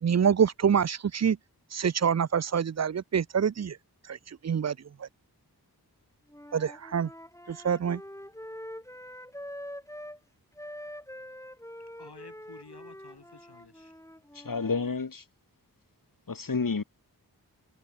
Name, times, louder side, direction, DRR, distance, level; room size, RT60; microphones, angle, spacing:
voice 1, 0.0-1.4 1.7-3.8 4.1-5.1 6.5-7.1 7.5-8.0, right 7 dB, 45° right, 0.5 m, -26 dB
Wind instrument woodwind instrument, 6.3-10.2 10.6-14.9, equal, 10° left, 5.2 m, -44 dB
voice 2, 11.8-14.0, left 4 dB, 85° left, 7.2 m, -52 dB
voice 3, 14.4-15.2 16.3-16.8, left 4 dB, 55° left, 2.2 m, -30 dB
wide cardioid pair, 60°, 38 cm